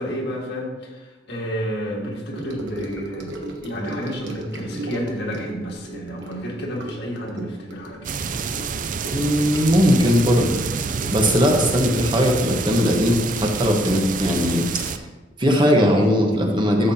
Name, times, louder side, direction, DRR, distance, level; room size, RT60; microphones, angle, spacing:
voice 1, 0.0-3.3 3.6-8.1, equal, 70° left, -1 dB, 1.9 m, -30 dB
Gurgling / Sink (filling or washing) / Trickle dribble, 2.3-14.0 14.2-14.6 14.8-14.9, right 1 dB, 80° right, 1.2 m, -36 dB
sound 1, 8.0-15.0, right 5 dB, 50° right, 0.5 m, -28 dB
voice 2, 9.1-10.5 11.1-14.6 14.9-15.1 15.4-16.9, equal, 25° right, 1 dB, 1.2 m, -19 dB
12.5 x 7.3 x 2.9 m, 1.2 s
head